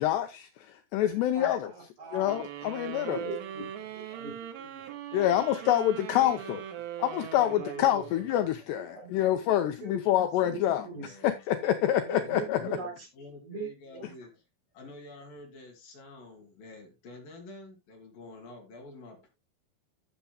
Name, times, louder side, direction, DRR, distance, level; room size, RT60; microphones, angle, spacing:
voice 1, 0.0-1.7 2.1-3.2 5.1-6.6 7.0-10.9 11.2-12.8, left 12 dB, 85° left, 2.5 m, -27 dB
voice 2, 1.3-2.3 2.8-4.8 5.1-5.2 6.1-6.5 7.3-8.0 8.8-9.2 9.8-10.0 10.4-11.1 12.0-13.1 13.4-14.1, right 3 dB, 40° right, 4.2 m, -41 dB
sound 1, 2.3-8.7, right 10 dB, 85° right, 4.0 m, -41 dB
voice 3, 3.8-4.3 4.8-5.6 8.0-8.1 10.4-11.4 12.2-14.4 14.7-19.3, left 2 dB, 55° left, 3.8 m, -49 dB
16.0 x 7.0 x 2.3 m
omnidirectional pair, 5.6 m